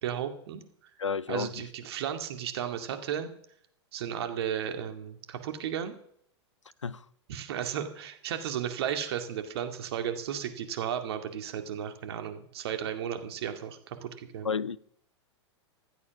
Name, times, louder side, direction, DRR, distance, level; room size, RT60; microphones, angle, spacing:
voice 1, 0.0-0.6 1.3-3.3 3.9-6.0 7.3-14.5, right 9 dB, 60° right, 2.2 m, -34 dB
voice 2, 1.0-1.6 6.8-7.0 14.4-14.8, left 6 dB, 90° left, 0.6 m, -31 dB
15.5 x 12.0 x 6.0 m
figure-of-eight pair, 100°, 15 cm